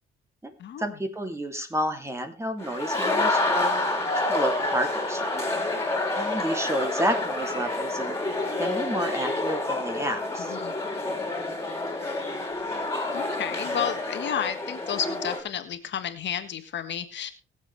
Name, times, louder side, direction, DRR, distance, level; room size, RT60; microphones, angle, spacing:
voice 1, 0.8-3.8 4.3-5.3 6.1-8.2 8.6-10.5, equal, 15° right, 5 dB, 2.9 m, -30 dB
sound 1, 2.6-15.4, left 2 dB, 15° left, 4.3 m, -28 dB
voice 2, 13.1-17.3, left 9 dB, 65° left, 9 dB, 1.6 m, -31 dB
21.5 x 7.6 x 3.4 m, 0.30 s
cardioid pair, 90°, 20 cm